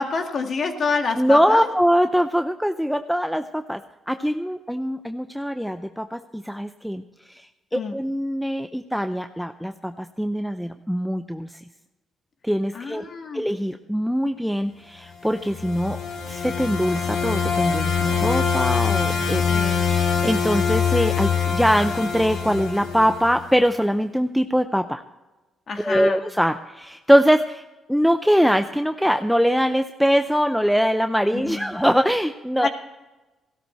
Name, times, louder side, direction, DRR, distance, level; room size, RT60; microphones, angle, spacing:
voice 1, 0.0-1.7 7.7-8.0 12.7-13.4 19.5-19.8 25.7-26.2 31.3-31.7 32.6-32.7, left 4 dB, 50° left, 5 dB, 2.0 m, -27 dB
voice 2, 1.1-3.8 4.1-7.0 7.3-7.5 7.7-11.5 12.4-13.0 13.3-16.0 16.3-19.5 19.8-25.0 25.8-27.6 27.9-32.7, equal, ahead, 8 dB, 0.6 m, -22 dB
sound 1, 15.3-23.5, left 6 dB, 75° left, 3.3 m, -24 dB
16.0 x 13.0 x 4.4 m, 1.1 s
cardioid pair, 90°, 0 cm